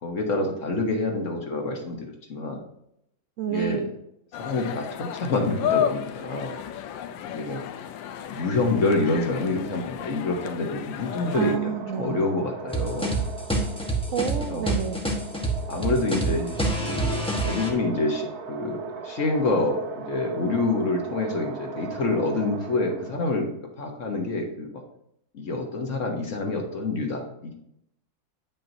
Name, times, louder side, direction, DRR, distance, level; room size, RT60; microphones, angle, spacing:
voice 1, 0.0-2.6 3.5-3.8 4.4-6.5 7.3-7.6 8.3-11.5 11.9-13.2 14.5-14.6 15.7-16.5 16.8-23.5 23.8-24.7 25.3-27.5, left 2 dB, 50° left, 2 dB, 1.1 m, -27 dB
voice 2, 3.4-3.9 11.3-12.2 14.1-15.0, right 9 dB, 90° right, 4 dB, 0.7 m, -29 dB
sound 1, 4.3-11.6, left 9 dB, 80° left, 1.2 m, -32 dB
sound 2, 11.0-23.4, right 6 dB, 60° right, 1.1 m, -39 dB
sound 3, 12.7-17.7, right 2 dB, 5° left, 0.5 m, -27 dB
9.1 x 6.0 x 2.7 m, 0.76 s
omnidirectional pair, 2.1 m